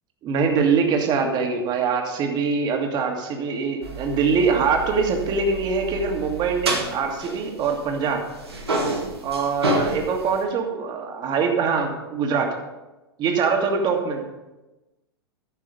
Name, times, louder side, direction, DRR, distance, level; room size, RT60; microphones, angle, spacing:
voice 1, 0.2-8.2 9.2-12.5 13.2-14.2, right 5 dB, 30° right, 3 dB, 1.8 m, -23 dB
sound 1, 3.8-8.1 8.3-10.4, right 2 dB, 80° right, 2.1 m, -29 dB
14.0 x 5.5 x 5.2 m, 1.1 s
figure-of-eight pair, 95°, 13 cm